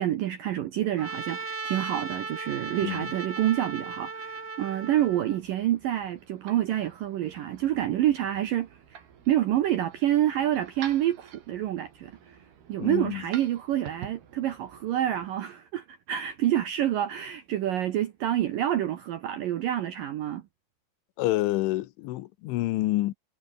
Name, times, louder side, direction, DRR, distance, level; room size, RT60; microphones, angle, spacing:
voice 1, 0.0-9.0 9.3-12.4 12.7-20.4, right 12 dB, 75° right, 2.0 m, -28 dB
Trumpet, 1.0-5.4, right 4 dB, 30° right, 1.4 m, -36 dB
voice 2, 2.8-3.1 12.8-13.2 21.2-23.1, left 17 dB, 85° left, 3.4 m, -28 dB
sound 1, 4.7-15.3, right 8 dB, 60° right, 4.8 m, -49 dB
omnidirectional pair, 5.5 m